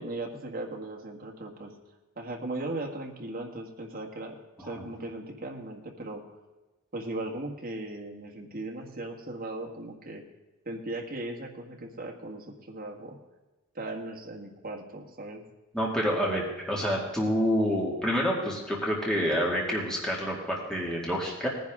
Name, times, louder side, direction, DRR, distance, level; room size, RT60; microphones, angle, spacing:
voice 1, 0.0-1.7 2.2-6.4 6.9-10.2 10.6-13.2 13.7-15.4, right 2 dB, 45° right, 1 dB, 1.7 m, -38 dB
voice 2, 15.7-21.5, equal, 5° left, -4 dB, 2.1 m, -28 dB
18.5 x 10.0 x 3.7 m, 1.2 s
head